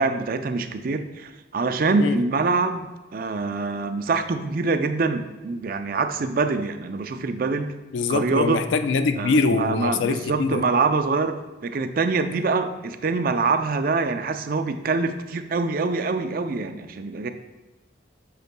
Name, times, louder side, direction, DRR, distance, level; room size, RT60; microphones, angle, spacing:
voice 1, 0.0-2.9 3.1-7.7 8.1-8.6 9.2-11.3 11.6-17.3, right 4 dB, 50° right, 8 dB, 0.4 m, -24 dB
voice 2, 7.9-10.6, left 4 dB, 80° left, 9 dB, 0.4 m, -23 dB
7.9 x 6.4 x 2.2 m, 1.1 s
head